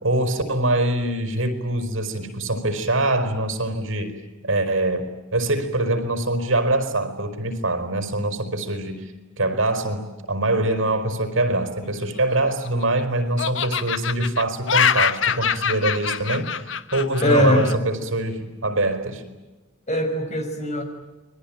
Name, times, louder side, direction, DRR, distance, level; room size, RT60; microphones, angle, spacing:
voice 1, 0.0-4.2 4.4-19.2, right 2 dB, 75° right, 9 dB, 4.9 m, -24 dB
Laughter, 12.2-13.0 13.4-17.8, left 7 dB, 70° left, 1.1 m, -24 dB
voice 2, 17.2-17.6 19.9-20.8, left 1 dB, 35° left, 5 dB, 5.8 m, -20 dB
29.5 x 22.5 x 9.0 m, 1.2 s
head